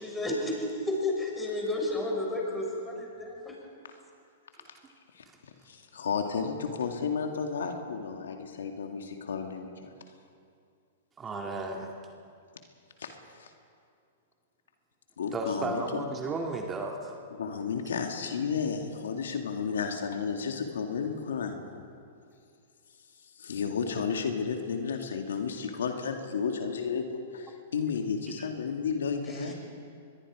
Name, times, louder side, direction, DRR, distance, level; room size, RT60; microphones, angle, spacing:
voice 1, 0.0-3.5 29.4-29.5, left 2 dB, 10° left, -1 dB, 6.3 m, -32 dB
voice 2, 5.7-9.9 13.0-13.5 15.2-16.0 17.4-21.6 23.4-29.5, left 6 dB, 80° left, 4 dB, 2.2 m, -32 dB
voice 3, 11.2-11.9 15.3-17.2, right 3 dB, 20° right, 1 dB, 2.1 m, -33 dB
24.5 x 21.5 x 5.0 m, 2.3 s
hypercardioid pair, 120°, 0 cm